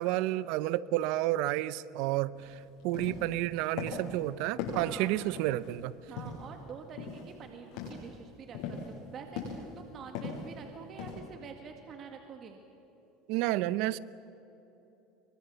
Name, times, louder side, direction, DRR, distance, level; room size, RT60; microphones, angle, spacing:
voice 1, 0.0-5.9 13.3-14.0, right 16 dB, 70° right, 0.7 m, -31 dB
sound 1, 2.3-2.5 2.8-3.4 3.8-4.2 4.6-5.7 6.2-6.6 7.0-7.3 7.6-8.1 8.5-8.9 9.4-9.8 10.1-10.5 11.0-11.2, left 5 dB, 70° left, 7.7 m, -39 dB
voice 2, 4.7-5.1 6.1-12.6, right 6 dB, 40° right, 2.0 m, -47 dB
27.5 x 24.0 x 7.0 m
supercardioid pair, 120°, 0 cm